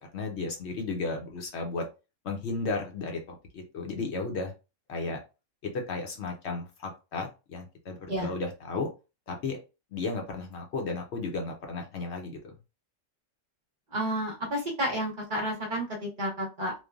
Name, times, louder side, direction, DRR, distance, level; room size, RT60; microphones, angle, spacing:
voice 1, 0.1-1.8 2.2-4.5 4.9-5.2 5.7-8.9 9.3-9.6 9.9-12.5, left 3 dB, 65° left, 2 dB, 0.8 m, -34 dB
voice 2, 13.9-16.7, equal, 45° right, -1 dB, 0.9 m, -31 dB
3.1 x 2.1 x 2.3 m, 0.29 s
omnidirectional pair, 1.3 m